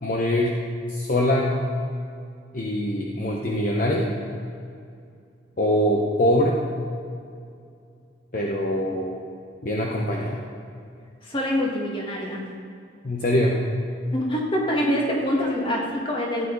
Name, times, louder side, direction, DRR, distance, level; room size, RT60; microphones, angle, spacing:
voice 1, 0.0-0.6 0.9-1.5 2.5-4.1 5.6-6.6 8.3-9.1 9.6-10.4 13.0-13.6, left 1 dB, 45° left, -2 dB, 0.9 m, -23 dB
voice 2, 11.2-12.4 14.1-16.5, equal, 30° left, -2 dB, 1.8 m, -25 dB
15.0 x 9.4 x 4.0 m, 2.4 s
head